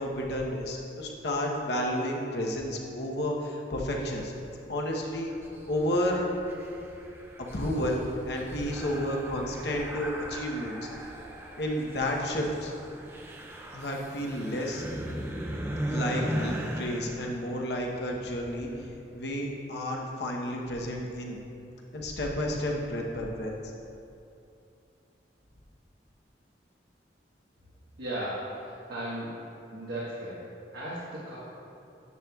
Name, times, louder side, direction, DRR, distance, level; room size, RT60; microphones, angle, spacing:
voice 1, 0.0-4.3 4.7-5.3 5.7-6.2 7.4-10.8 11.6-12.7 13.7-14.8 15.9-18.7 19.1-21.4 21.9-23.5, left 1 dB, 70° left, -1 dB, 1.0 m, -31 dB
sound 1, 5.0-18.9, right 1 dB, 15° right, 0.4 m, -38 dB
voice 2, 28.0-29.4 29.7-31.4, right 1 dB, 90° right, -8 dB, 1.4 m, -36 dB
9.6 x 7.7 x 2.4 m, 2.7 s
head